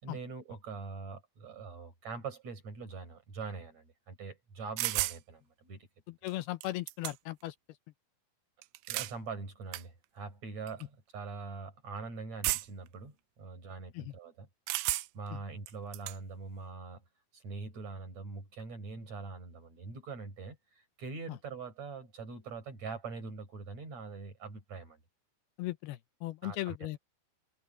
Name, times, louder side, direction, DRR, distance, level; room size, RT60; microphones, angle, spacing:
voice 1, 0.0-5.9 6.3-6.4 8.9-14.5 15.1-17.0 17.3-25.0 26.4-26.8, right 4 dB, 45° right, 6.8 m, -43 dB
sound 1, 4.8-5.2 6.3-6.4 6.6-7.4 8.6-9.1 9.7-9.8 10.7-10.8 12.4-12.9 14.7-15.3 15.7-16.2, right 18 dB, 85° right, 2.8 m, -33 dB
voice 2, 6.2-7.6 13.9-14.1 15.3-15.4 21.3-21.4 25.6-27.0, left 16 dB, 80° left, 2.7 m, -37 dB
omnidirectional pair, 4.6 m